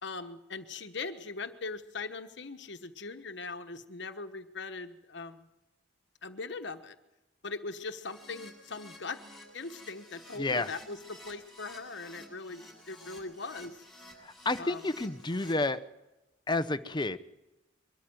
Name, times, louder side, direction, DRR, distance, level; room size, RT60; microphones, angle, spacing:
voice 1, 0.0-5.5 6.2-7.0 7.4-9.2 9.5-13.8 14.6-14.8, left 4 dB, 65° left, 8 dB, 1.2 m, -40 dB
Keyboard (musical), 8.0-15.5, left 1 dB, ahead, 7.5 m, -52 dB
voice 2, 10.4-10.7 14.4-15.8 16.5-17.2, left 2 dB, 25° left, 12 dB, 0.8 m, -30 dB
23.0 x 13.5 x 9.3 m, 1.0 s
head